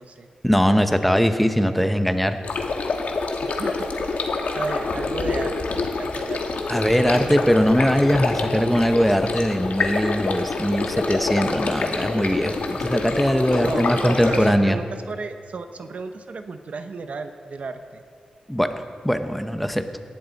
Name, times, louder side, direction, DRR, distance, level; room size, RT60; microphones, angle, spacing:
voice 1, 0.4-2.4 6.7-14.8 18.5-19.9, equal, 5° left, 8 dB, 0.8 m, -21 dB
sound 1, 2.4-14.5, left 3 dB, 75° left, 1.3 m, -26 dB
voice 2, 3.4-4.3 4.5-6.6 13.6-18.0, right 4 dB, 65° right, 8 dB, 0.8 m, -34 dB
18.0 x 11.0 x 4.0 m, 2.2 s
wide cardioid pair, 85°, 3 cm